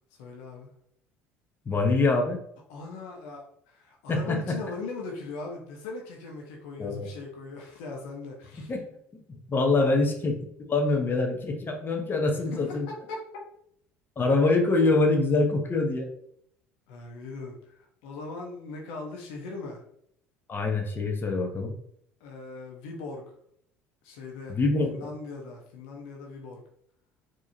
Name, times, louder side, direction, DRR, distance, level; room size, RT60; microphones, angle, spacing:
voice 1, 0.2-0.7 2.7-8.7 9.8-9.9 12.5-13.3 16.9-19.8 22.2-23.3 24.0-24.6 24.8-26.6, left 3 dB, 65° left, 0 dB, 0.9 m, -40 dB
voice 2, 1.7-2.4 4.1-4.6 6.8-7.1 8.6-8.8 9.3-10.4 10.7-12.9 14.2-16.1 20.5-21.7 24.5-24.9, left 3 dB, 30° left, 2 dB, 0.9 m, -25 dB
4.6 x 3.0 x 2.7 m, 0.68 s
figure-of-eight pair, 60°, 7 cm